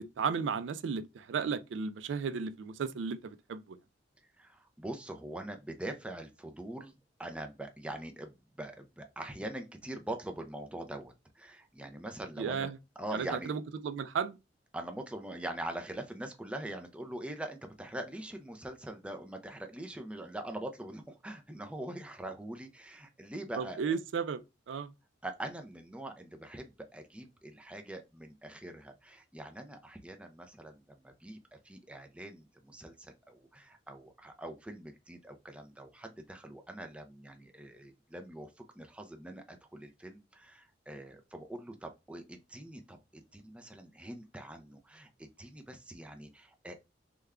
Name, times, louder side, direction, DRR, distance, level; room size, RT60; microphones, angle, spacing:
voice 1, 0.0-3.8 12.4-12.8 13.1-14.4 23.6-24.4 24.7-24.9, right 6 dB, 80° right, 0.3 m, -34 dB
voice 2, 4.4-6.9 7.2-12.7 13.0-13.5 14.7-23.8 25.2-46.8, right 1 dB, 5° right, 0.4 m, -43 dB
3.3 x 2.2 x 3.5 m
head